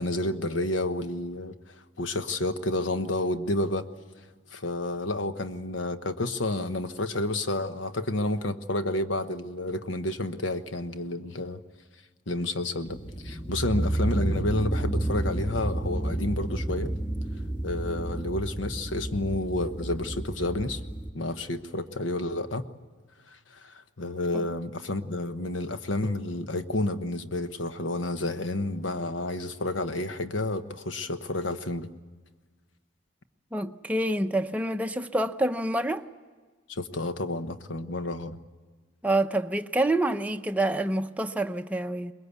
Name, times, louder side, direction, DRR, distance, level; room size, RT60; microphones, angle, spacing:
voice 1, 0.0-3.9 4.5-11.6 12.3-16.9 17.6-20.8 21.1-22.7 23.3-31.9 36.7-38.4, left 2 dB, 75° left, 1.1 m, -30 dB
sound 1, 12.9-21.1, right 1 dB, 25° left, 1.6 m, -31 dB
voice 2, 33.5-36.1 39.0-42.1, right 1 dB, 10° right, 0.7 m, -27 dB
23.0 x 21.0 x 8.3 m
head